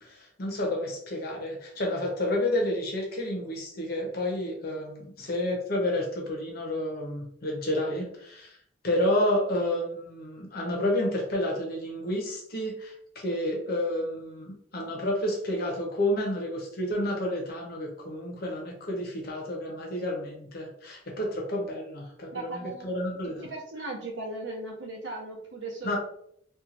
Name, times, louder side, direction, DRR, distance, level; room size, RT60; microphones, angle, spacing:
voice 1, 0.0-8.6 8.8-23.5 25.8-26.0, left 1 dB, 55° left, -1 dB, 0.8 m, -30 dB
voice 2, 22.3-22.9 23.4-26.0, right 2 dB, 75° right, -1 dB, 0.9 m, -37 dB
2.9 x 2.4 x 2.5 m, 0.69 s
head